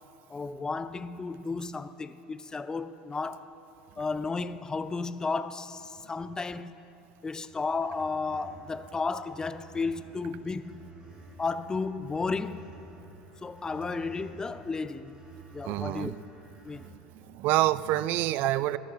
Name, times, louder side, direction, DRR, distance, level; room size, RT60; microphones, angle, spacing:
voice 1, 0.3-3.5 4.0-6.8 7.2-10.8 11.4-12.7 13.4-15.2 15.5-16.1 16.6-16.9, left 4 dB, 15° left, 0.5 m, -33 dB
sound 1, 7.5-16.9, right 3 dB, 25° right, 2.5 m, -51 dB
voice 2, 15.6-16.2 16.7-18.8, right 16 dB, 55° right, 0.4 m, -28 dB
22.0 x 11.5 x 2.5 m
hypercardioid pair, 80°, 4 cm